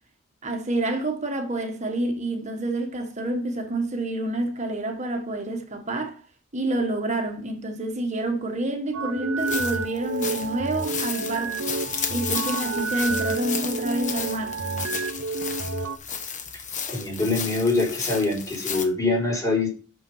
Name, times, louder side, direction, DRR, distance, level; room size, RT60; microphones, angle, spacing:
voice 1, 0.4-6.2 6.5-11.6 12.1-14.6, right 1 dB, 35° right, 1.4 m, -28 dB
sound 1, 8.9-16.0, right 3 dB, 85° right, 0.9 m, -30 dB
sound 2, 9.4-18.9, left 6 dB, 35° left, 1.1 m, -33 dB
voice 2, 16.9-19.7, left 3 dB, 15° left, 3.9 m, -24 dB
6.4 x 6.1 x 5.5 m
head